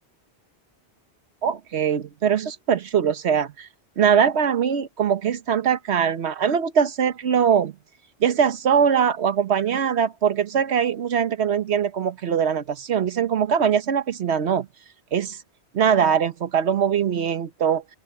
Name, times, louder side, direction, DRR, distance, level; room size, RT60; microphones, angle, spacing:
voice 1, 1.4-3.7 4.0-7.7 8.2-14.7 15.1-15.4 15.7-17.8, right 7 dB, 90° right, 1.3 m, -22 dB
omnidirectional pair, 1.1 m